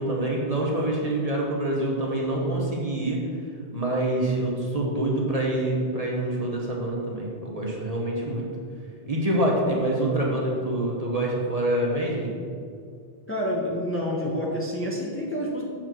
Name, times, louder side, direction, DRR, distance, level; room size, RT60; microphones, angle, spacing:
voice 1, 0.0-3.2 3.7-8.5 9.1-12.4, right 1 dB, 35° right, -3 dB, 1.2 m, -26 dB
voice 2, 13.3-15.6, equal, 15° left, -3 dB, 1.0 m, -28 dB
7.4 x 4.3 x 6.2 m, 2.3 s
omnidirectional pair, 1.1 m